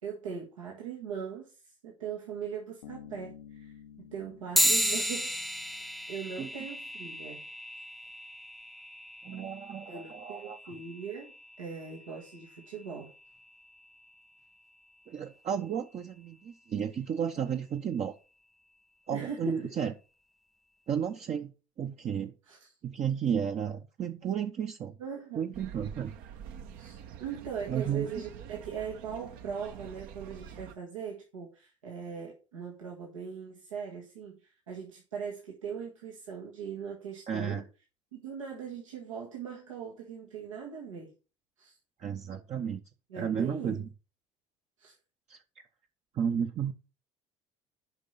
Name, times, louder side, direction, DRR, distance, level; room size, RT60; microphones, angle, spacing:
voice 1, 0.0-3.7 4.1-5.4 6.1-7.4 9.9-11.3 11.6-13.1 19.1-19.7 22.5-22.7 25.0-25.4 26.8-37.6 38.1-41.1 41.6-41.8 43.1-43.8 44.8-44.9, right 6 dB, 85° right, 1.7 m, -40 dB
Bass guitar, 2.8-6.4, left 9 dB, 85° left, 0.8 m, -52 dB
sound 1, 4.5-14.4, equal, ahead, 0.3 m, -35 dB
voice 2, 9.2-10.8 15.1-18.2 19.1-19.9 20.9-21.5 21.8-22.3 22.8-24.9 25.3-26.1 27.7-28.1 37.3-37.6 42.0-42.8 43.2-43.9 45.3-45.4 46.1-46.7, right 8 dB, 40° right, 0.8 m, -33 dB
sound 2, 25.5-30.7, right 8 dB, 65° right, 1.1 m, -46 dB
7.9 x 5.3 x 5.7 m
hypercardioid pair, 65°, 16 cm